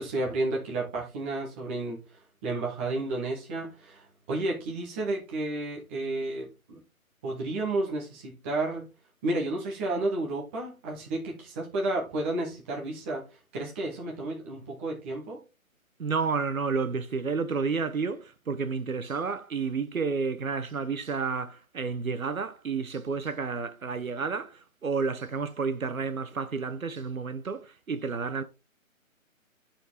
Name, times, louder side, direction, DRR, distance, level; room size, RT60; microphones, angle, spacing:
voice 1, 0.0-6.8 7.2-8.8 9.2-13.2 13.5-15.4, right 2 dB, 10° right, 0.8 m, -32 dB
voice 2, 16.0-28.4, right 5 dB, 75° right, 1.1 m, -31 dB
10.5 x 4.4 x 3.5 m
figure-of-eight pair, 150°, 42 cm